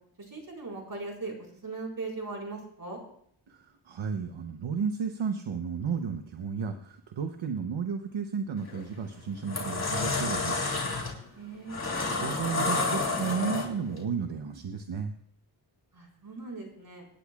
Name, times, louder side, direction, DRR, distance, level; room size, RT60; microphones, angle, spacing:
voice 1, 0.2-1.3 1.6-3.0 11.3-11.8 15.9-17.1, right 3 dB, 45° right, -1 dB, 4.7 m, -39 dB
voice 2, 3.5-10.6 12.1-15.1, right 6 dB, 70° right, 6 dB, 0.9 m, -33 dB
sound 1, 8.6-8.8 9.3-14.0, left 3 dB, 35° left, 3.1 m, -30 dB
26.5 x 10.0 x 2.4 m, 0.66 s
wide cardioid pair, 85°, 47 cm